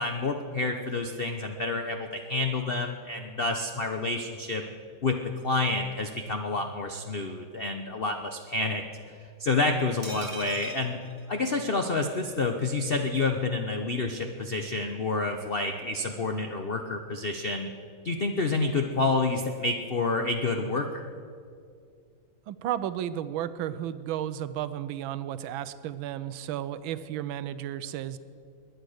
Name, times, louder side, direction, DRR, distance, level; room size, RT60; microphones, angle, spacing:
voice 1, 0.0-4.6 5.0-9.1 9.4-11.0 11.3-17.7 18.0-21.1, left 3 dB, 60° left, 5 dB, 0.5 m, -29 dB
sound 1, 10.0-12.0 12.3-12.4 12.6-12.8, right 2 dB, 20° right, 1.6 m, -42 dB
voice 2, 22.5-28.2, right 11 dB, 80° right, 14 dB, 1.4 m, -33 dB
20.5 x 10.5 x 6.5 m, 2.3 s
omnidirectional pair, 2.2 m